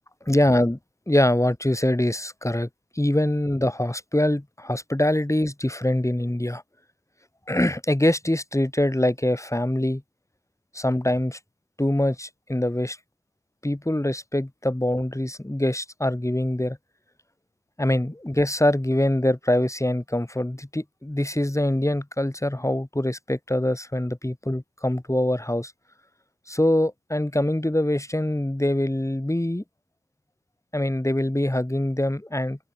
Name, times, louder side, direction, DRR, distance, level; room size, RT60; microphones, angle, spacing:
voice 1, 0.3-0.8 1.1-2.7 2.9-6.6 7.5-10.0 10.7-11.4 11.8-13.0 13.6-16.8 17.8-25.7 26.5-29.6 30.7-32.6, left 1 dB, 10° left, 7.5 m, -24 dB
open air
supercardioid pair, 50°, 30 cm